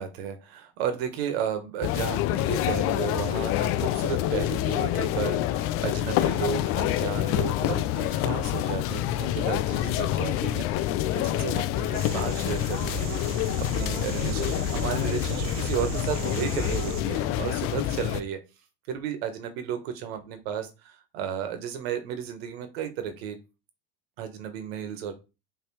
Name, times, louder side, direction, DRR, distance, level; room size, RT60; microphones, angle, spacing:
voice 1, 0.0-10.8 11.1-13.4 13.7-18.4 18.9-23.4 24.2-25.1, right 8 dB, 75° right, 8 dB, 1.6 m, -33 dB
sound 1, 1.8-18.2, left 13 dB, 45° left, 0.6 m, -27 dB
sound 2, 11.9-17.0, right 5 dB, 45° right, 0.9 m, -36 dB
5.8 x 3.4 x 4.8 m, 0.29 s
supercardioid pair, 120°, 31 cm